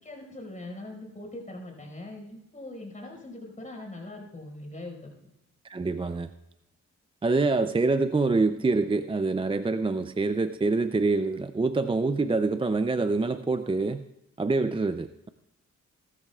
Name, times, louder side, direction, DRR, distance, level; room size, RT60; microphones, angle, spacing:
voice 1, 0.0-5.1, left 2 dB, 25° left, 0 dB, 5.0 m, -41 dB
voice 2, 5.6-6.3 7.2-14.0 14.4-15.3, right 3 dB, 20° right, 10 dB, 0.4 m, -26 dB
18.5 x 13.5 x 2.4 m, 0.88 s
cardioid pair, 85°, 29 cm